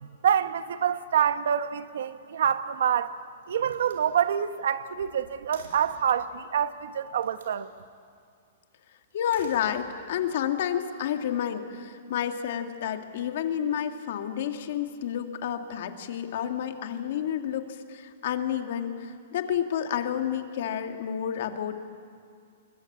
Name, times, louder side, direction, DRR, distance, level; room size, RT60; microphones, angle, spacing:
voice 1, 0.0-3.1 3.5-7.7, right 8 dB, 70° right, 1.2 m, -26 dB
Slam, 2.7-3.1 3.6-6.1 7.1-7.6 9.1-10.2, right 4 dB, 90° right, 5.2 m, -51 dB
voice 2, 9.1-21.8, left 9 dB, 50° left, 1.9 m, -30 dB
28.0 x 22.0 x 8.6 m
hypercardioid pair, 170°, 0 cm